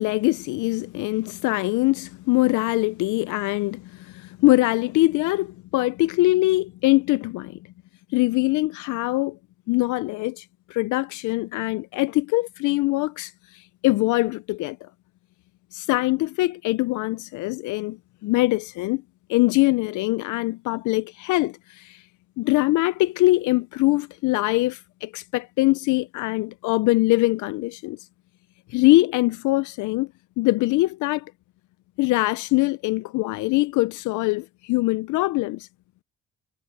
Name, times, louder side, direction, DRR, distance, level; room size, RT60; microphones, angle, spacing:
voice 1, 0.0-7.6 8.1-9.4 9.7-14.9 15.7-18.0 18.2-19.0 19.3-22.0 22.4-28.0 28.7-30.1 30.4-31.3 32.0-35.7, left 20 dB, 75° left, 0.6 m, -23 dB
supercardioid pair, 65°, 30 cm